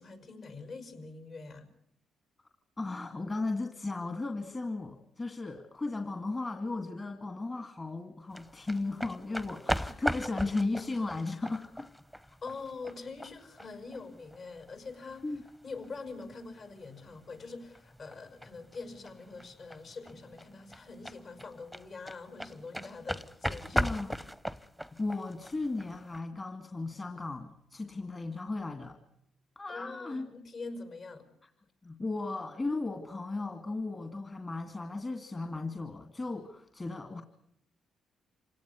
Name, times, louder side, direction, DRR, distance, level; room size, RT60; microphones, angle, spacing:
voice 1, 0.0-1.7 12.4-24.0 29.7-31.3, left 3 dB, 55° left, 8 dB, 6.0 m, -44 dB
voice 2, 2.8-11.9 15.2-15.4 23.7-24.2 24.9-29.0 29.6-30.3 31.8-37.2, left 3 dB, 30° left, 6 dB, 2.4 m, -35 dB
sound 1, 8.3-26.2, equal, 5° left, 1.0 m, -39 dB
27.0 x 17.5 x 9.6 m, 0.77 s
cardioid pair, 90°, 0 cm